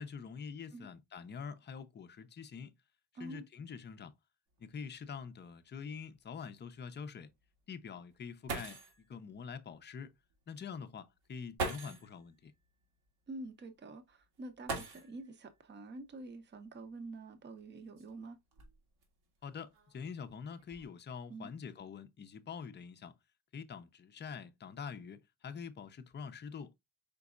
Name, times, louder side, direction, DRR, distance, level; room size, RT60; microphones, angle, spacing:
voice 1, 0.0-2.7 3.2-4.1 4.6-7.3 7.7-10.1 10.5-12.5 19.4-23.1 23.5-26.7, left 6 dB, 30° left, 0.5 m, -45 dB
sound 1, 4.6-4.7 5.1-5.2 5.8-5.9 8.1-8.2 8.5-9.0 10.3-10.4 11.5-12.1 14.6-15.4 16.7-16.8 17.6-19.0 19.7-20.1 20.4-20.8, right 3 dB, 85° right, 1.8 m, -41 dB
voice 2, 13.3-18.4 21.3-21.5, right 2 dB, 30° right, 0.7 m, -47 dB
5.2 x 4.0 x 2.3 m
cardioid pair, 170°, 38 cm